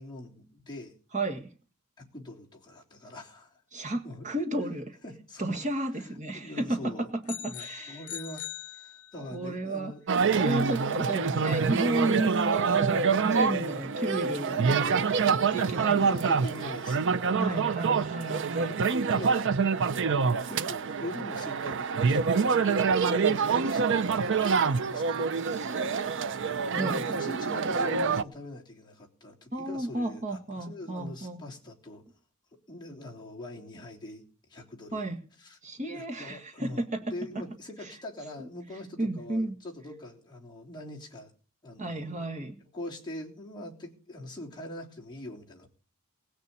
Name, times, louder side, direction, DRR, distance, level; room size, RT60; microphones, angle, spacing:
voice 1, 0.0-0.9 2.0-3.6 4.0-4.3 5.0-5.6 5.9-7.1 7.5-10.0 10.3-10.7 15.7-17.9 18.6-19.4 19.8-25.3 25.6-26.0 26.7-32.0 32.7-34.2 34.5-35.0 35.4-35.6 35.9-41.3 41.6-42.3 42.7-45.7, left 1 dB, 20° left, -3 dB, 3.5 m, -43 dB
voice 2, 1.1-1.5 3.7-5.0 5.4-8.0 9.2-9.9 10.3-16.4 17.3-18.8 25.5-26.1 26.8-27.1 29.5-31.4 34.9-35.2 35.6-37.1 37.8-37.9 38.4-38.5 39.0-39.6 41.8-42.6, right 2 dB, 35° right, 4 dB, 1.8 m, -32 dB
sound 1, 7.3-9.5, left 11 dB, 80° left, 0.8 m, -41 dB
sound 2, 10.1-28.2, right 5 dB, 55° right, 0.6 m, -26 dB
19.0 x 6.8 x 8.5 m, 0.39 s
head